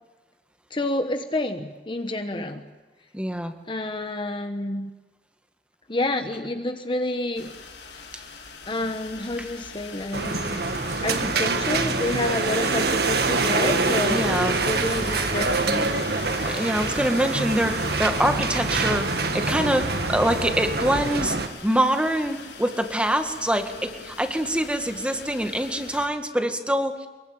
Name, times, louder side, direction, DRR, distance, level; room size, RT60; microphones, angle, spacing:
voice 1, 0.7-2.6 3.7-4.9 5.9-7.5 8.7-10.6 11.0-16.0, left 2 dB, 30° left, 7 dB, 1.2 m, -29 dB
voice 2, 3.1-3.5 9.4-9.5 14.1-14.6 16.5-21.4 21.6-27.1, equal, 5° right, 6 dB, 1.8 m, -25 dB
sound 1, 7.4-26.1, left 5 dB, 75° left, 4.2 m, -41 dB
sound 2, 10.1-21.5, right 3 dB, 60° right, 1.8 m, -25 dB
23.5 x 22.5 x 9.0 m, 1.3 s
head